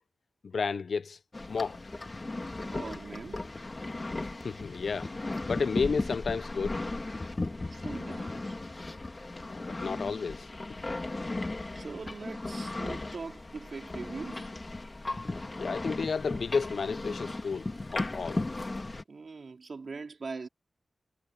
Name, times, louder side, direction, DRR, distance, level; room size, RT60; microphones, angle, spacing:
voice 1, 0.5-1.2 1.5-1.8 4.4-5.1 5.5-6.8 9.5-10.5 15.6-18.4, left 5 dB, 70° left, 0.4 m, -32 dB
sound 1, 1.3-19.0, left 2 dB, 30° left, 2.1 m, -36 dB
voice 2, 2.6-3.5 7.7-8.6 11.7-14.5 19.1-20.5, right 4 dB, 60° right, 3.7 m, -42 dB
wide cardioid pair, 115°, 0 cm